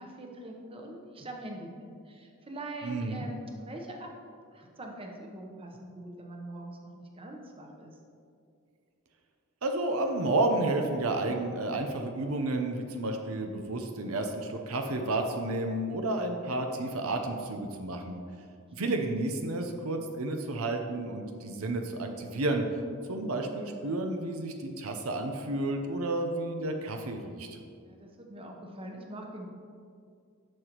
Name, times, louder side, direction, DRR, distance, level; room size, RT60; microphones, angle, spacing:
voice 1, 0.0-4.1 4.5-8.0 18.8-19.1 27.8-29.5, right 1 dB, 25° right, 1 dB, 0.9 m, -43 dB
voice 2, 2.8-3.3 9.6-18.2 18.7-22.7 23.1-27.5, right 2 dB, 85° right, 4 dB, 0.7 m, -31 dB
10.5 x 6.7 x 3.0 m, 2.3 s
head